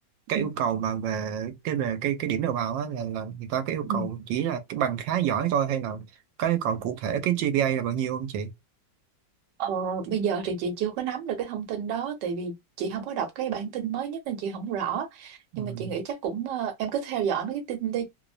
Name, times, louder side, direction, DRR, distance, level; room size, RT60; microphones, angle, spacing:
voice 1, 0.3-6.1 6.4-8.5 15.5-16.0, right 9 dB, 90° right, 1.3 m, -28 dB
voice 2, 9.6-18.1, right 7 dB, 75° right, 1.4 m, -30 dB
3.2 x 2.1 x 2.4 m
omnidirectional pair, 2.0 m